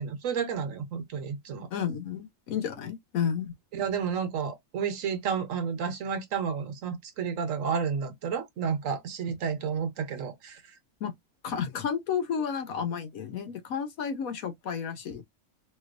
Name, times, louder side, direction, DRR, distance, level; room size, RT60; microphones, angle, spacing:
voice 1, 0.0-1.7 3.7-10.6, right 6 dB, 75° right, 1.2 m, -31 dB
voice 2, 1.7-3.5 11.0-11.1 11.4-15.2, left 7 dB, 85° left, 1.3 m, -31 dB
4.3 x 2.5 x 2.5 m
omnidirectional pair, 1.4 m